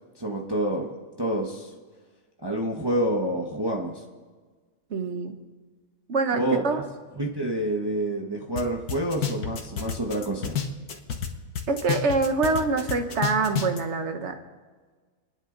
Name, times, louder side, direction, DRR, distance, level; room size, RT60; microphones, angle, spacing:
voice 1, 0.2-0.9 1.2-1.7 2.4-4.0 6.3-6.8 7.2-10.6, right 1 dB, 15° right, -1 dB, 1.3 m, -28 dB
voice 2, 4.9-5.3 6.1-6.8 11.7-14.4, right 3 dB, 50° right, 6 dB, 1.4 m, -25 dB
sound 1, 8.6-8.7 8.9-11.3 11.6-13.8, left 8 dB, 85° left, 1.8 m, -29 dB
29.5 x 10.0 x 3.9 m, 1.4 s
omnidirectional pair, 1.6 m